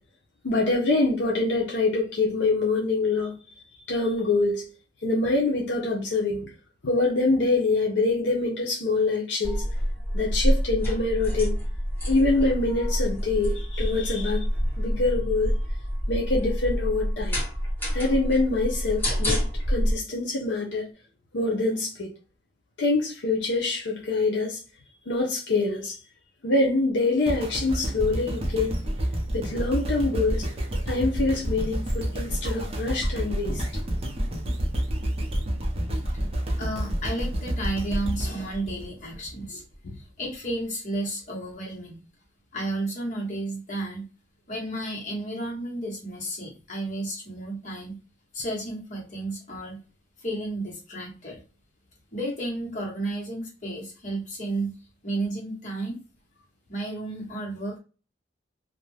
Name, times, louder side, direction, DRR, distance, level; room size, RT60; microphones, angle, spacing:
voice 1, 0.4-3.3 3.7-4.7 5.0-6.5 6.8-9.6 10.1-11.6 12.1-14.5 14.8-15.5 16.1-17.4 17.9-20.9 21.3-22.1 22.8-24.6 25.1-26.0 26.4-28.8 29.3-30.5 30.9-33.6 39.8-40.0, left 3 dB, 75° left, 0.6 m, -25 dB
sound 1, 9.4-19.9, equal, 10° left, 1.1 m, -27 dB
sound 2, 27.3-39.5 40.0-40.1, equal, 35° right, 0.6 m, -29 dB
voice 2, 36.5-39.6 40.0-42.0 42.5-44.1 44.5-48.0 48.3-49.8 50.2-51.4 52.1-54.7 55.0-56.0 56.7-57.8, right 1 dB, 45° left, 1.1 m, -32 dB
2.5 x 2.1 x 3.2 m
head